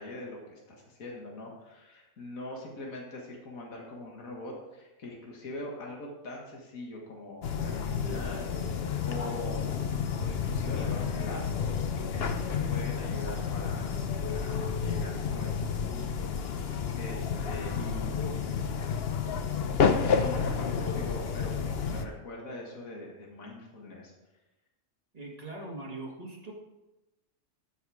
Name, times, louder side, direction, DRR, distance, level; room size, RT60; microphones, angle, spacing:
voice 1, 0.0-8.7 9.0-9.7 10.1-18.6 19.4-24.1, left 1 dB, 75° left, -1 dB, 2.1 m, -43 dB
sound 1, 7.4-22.0, left 6 dB, 55° left, 0.9 m, -30 dB
voice 2, 25.1-26.5, right 2 dB, 30° right, -1 dB, 2.1 m, -41 dB
13.0 x 6.2 x 4.9 m, 1.0 s
omnidirectional pair, 1.4 m